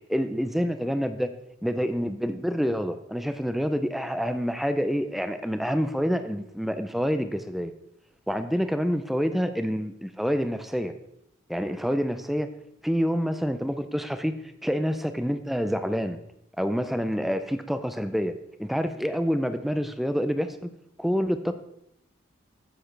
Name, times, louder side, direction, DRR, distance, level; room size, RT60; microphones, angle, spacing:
voice 1, 0.1-1.3 1.6-7.7 8.3-10.9 11.5-12.5 12.8-16.2 16.6-18.3 18.6-20.7 21.0-21.5, equal, ahead, 9 dB, 0.4 m, -27 dB
10.5 x 8.0 x 3.3 m, 0.78 s
head